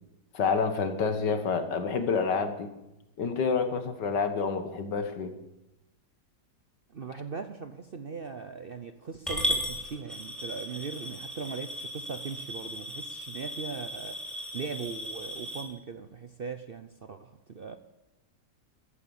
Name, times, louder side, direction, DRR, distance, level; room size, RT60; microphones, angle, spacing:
voice 1, 0.3-2.7 3.2-5.3, left 5 dB, 80° left, 2.1 m, -28 dB
voice 2, 6.9-17.8, right 5 dB, 50° right, 0.7 m, -39 dB
Coin (dropping) / Glass, 9.3-15.6, equal, ahead, 3.6 m, -36 dB
14.5 x 13.5 x 7.2 m
omnidirectional pair, 1.8 m